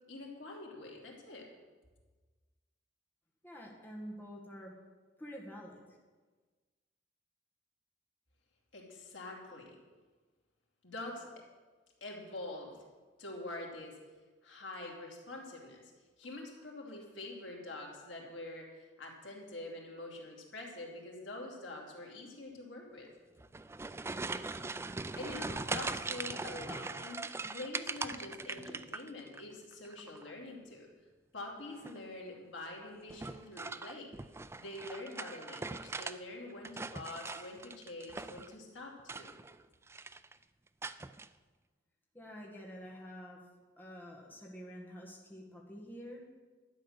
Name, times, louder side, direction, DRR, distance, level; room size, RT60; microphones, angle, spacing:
voice 1, 0.1-1.5 8.7-9.8 10.8-11.3 12.0-12.8 13.2-14.0 14.4-15.9 16.2-23.1 25.1-27.2 27.5-30.9 31.3-34.1 34.6-39.3, left 2 dB, 80° left, -1 dB, 2.8 m, -45 dB
voice 2, 3.4-4.7 5.2-5.8 42.1-43.4 43.8-46.2, equal, 10° left, -3 dB, 1.8 m, -48 dB
sound 1, 23.4-29.4 29.7-30.3 31.7-32.1 33.1-36.2 36.5-38.5 39.0-39.6 39.9-40.3 40.8-41.3, right 3 dB, 15° right, 0.3 m, -41 dB
12.0 x 9.3 x 6.6 m, 1.4 s
head